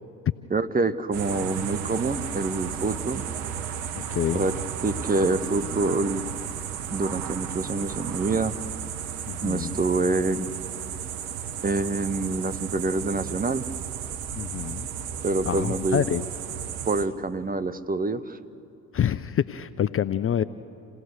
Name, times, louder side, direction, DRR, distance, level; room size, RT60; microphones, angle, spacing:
voice 1, 0.5-3.3 4.3-4.5 4.8-6.3 6.9-8.6 9.4-10.5 11.6-13.7 15.2-16.0 16.8-18.4, right 3 dB, 20° right, 14 dB, 1.0 m, -26 dB
sound 1, 1.1-17.1, right 8 dB, 75° right, 1.1 m, -34 dB
voice 2, 3.9-4.4 9.3-9.8 14.3-14.9 15.5-16.3 18.9-20.4, left 9 dB, 35° left, 15 dB, 0.6 m, -27 dB
28.0 x 17.0 x 6.6 m, 2.6 s
hypercardioid pair, 50°, 41 cm